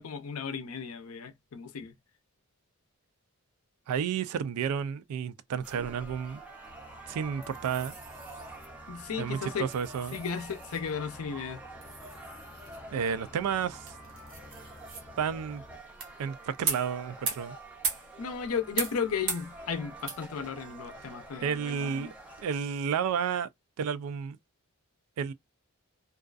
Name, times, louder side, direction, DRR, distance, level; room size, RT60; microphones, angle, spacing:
voice 1, 0.0-1.9 8.9-9.7 10.1-11.6 18.2-22.1, left 6 dB, 75° left, 0.5 m, -35 dB
voice 2, 3.9-6.4 7.1-7.9 9.2-10.2 12.9-13.9 15.2-15.6 16.2-17.6 21.4-22.1 22.4-23.5 23.8-24.4 25.2-25.3, right 7 dB, 75° right, 0.3 m, -31 dB
sound 1, 5.6-22.6, right 2 dB, 5° right, 0.5 m, -48 dB
sound 2, 5.6-22.4, right 5 dB, 55° right, 0.7 m, -41 dB
sound 3, 6.6-15.8, left 2 dB, 30° left, 0.7 m, -53 dB
2.3 x 2.3 x 2.3 m
head